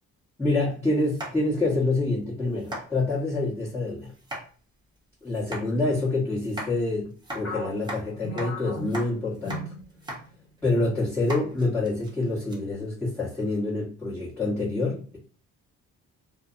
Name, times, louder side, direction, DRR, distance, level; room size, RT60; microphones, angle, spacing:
voice 1, 0.4-4.1 5.2-9.6 10.6-15.2, left 2 dB, 5° left, -11 dB, 1.0 m, -27 dB
sound 1, 1.1-1.7 2.1-2.2 2.6-2.8 4.1-4.4 5.3-5.6 6.4-6.7 7.2-8.0 8.4-8.5 8.8-9.1 9.3-9.6 9.9-10.2 10.6-10.7 11.2-12.6, right 1 dB, 15° right, 0.8 m, -37 dB
sound 2, 7.4-10.3 10.6-10.8 11.5-11.9, left 1 dB, 50° left, 1.0 m, -37 dB
2.5 x 2.1 x 2.4 m, 0.40 s
cardioid pair, 90°, 30 cm